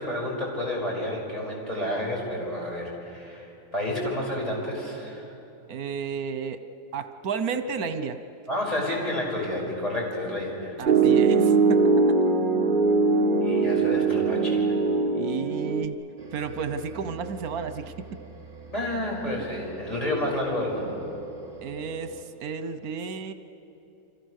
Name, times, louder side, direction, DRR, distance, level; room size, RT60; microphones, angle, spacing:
voice 1, 0.0-5.3 8.5-10.8 13.4-14.8 18.7-21.0, left 1 dB, 25° left, -2 dB, 6.3 m, -30 dB
voice 2, 5.7-6.6 6.9-8.2 10.8-11.9 15.1-16.0 16.3-18.1 21.6-23.3, right 6 dB, 80° right, 10 dB, 1.4 m, -32 dB
Piano, 10.9-15.8, right 4 dB, 35° right, 1.2 m, -21 dB
sound 1, 16.2-22.2, right 4 dB, 55° right, 3.4 m, -44 dB
29.0 x 25.5 x 6.6 m, 2.9 s
omnidirectional pair, 1.5 m